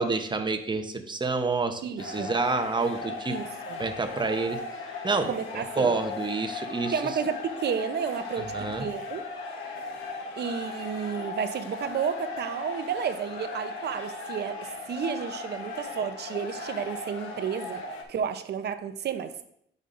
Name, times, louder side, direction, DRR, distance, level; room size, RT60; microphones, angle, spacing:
voice 1, 0.0-3.4 3.8-4.6 5.0-6.9 8.4-8.9, right 3 dB, 25° right, 7 dB, 0.8 m, -28 dB
voice 2, 1.8-2.3 3.3-3.8 5.3-5.9 6.9-8.5 8.8-9.2 10.4-14.6 14.9-17.8 18.1-19.3, right 7 dB, 55° right, 9 dB, 0.7 m, -31 dB
sound 1, 2.0-18.0, left 3 dB, 90° left, 1.1 m, -37 dB
10.0 x 5.3 x 2.6 m, 0.71 s
cardioid pair, 90°, 20 cm